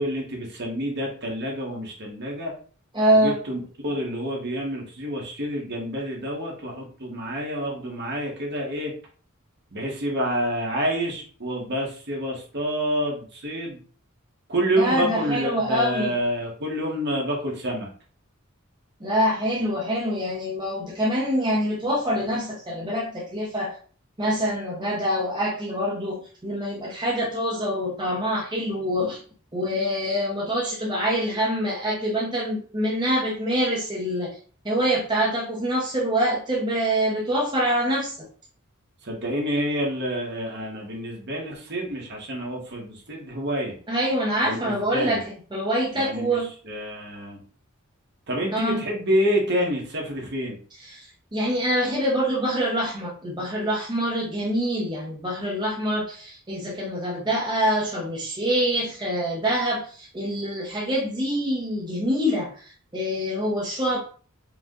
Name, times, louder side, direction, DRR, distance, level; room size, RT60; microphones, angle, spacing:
voice 1, 0.0-2.5 3.1-8.9 9.7-13.8 14.5-17.9 39.0-43.7 44.4-45.2 45.9-46.3 46.7-47.4 48.3-50.6, equal, 55° right, -2 dB, 1.4 m, -28 dB
voice 2, 2.9-3.4 14.8-16.1 19.0-23.8 24.2-29.2 29.5-34.4 34.6-38.3 43.9-45.2 45.5-46.5 48.5-48.8 50.8-64.0, equal, 20° right, -4 dB, 0.8 m, -25 dB
4.8 x 2.3 x 3.8 m, 0.42 s
head